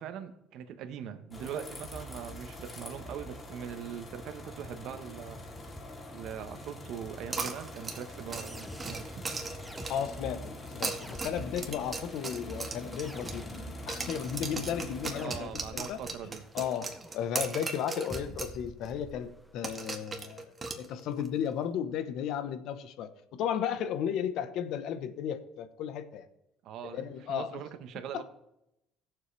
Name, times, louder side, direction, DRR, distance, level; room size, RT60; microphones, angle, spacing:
voice 1, 0.0-5.4 6.1-9.2 15.2-16.4 26.6-28.2, right 8 dB, 70° right, 8 dB, 1.2 m, -41 dB
sound 1, 1.3-15.2, left 1 dB, 30° left, 2.8 m, -44 dB
sound 2, 7.3-10.2 10.7-13.6 13.9-18.6 18.8-18.9 19.6-21.3, right 4 dB, 30° right, 1.9 m, -38 dB
sound 3, 7.5-19.5, equal, ahead, 1.0 m, -49 dB
voice 2, 9.9-13.5 13.9-16.0 16.5-16.9 17.1-20.5 20.8-26.2 26.9-27.5 28.1-28.2, left 9 dB, 70° left, 11 dB, 1.1 m, -34 dB
16.0 x 7.4 x 3.4 m, 0.83 s
supercardioid pair, 85°, 0 cm